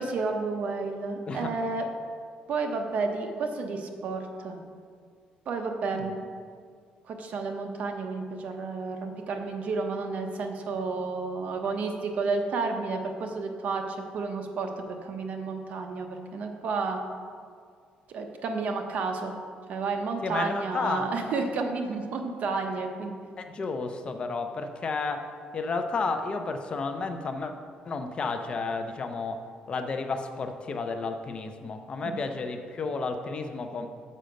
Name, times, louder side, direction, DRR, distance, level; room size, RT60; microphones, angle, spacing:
voice 1, 0.0-1.8 2.5-4.6 5.5-6.3 7.1-14.7 15.0-17.0 18.1-19.4 19.7-23.1 32.0-32.2, right 4 dB, 55° right, 4 dB, 0.8 m, -31 dB
voice 2, 20.2-21.1 23.4-27.5 27.9-33.9, left 4 dB, 35° left, 7 dB, 0.5 m, -32 dB
6.4 x 5.6 x 5.1 m, 2.1 s
cardioid pair, 130°, 3 cm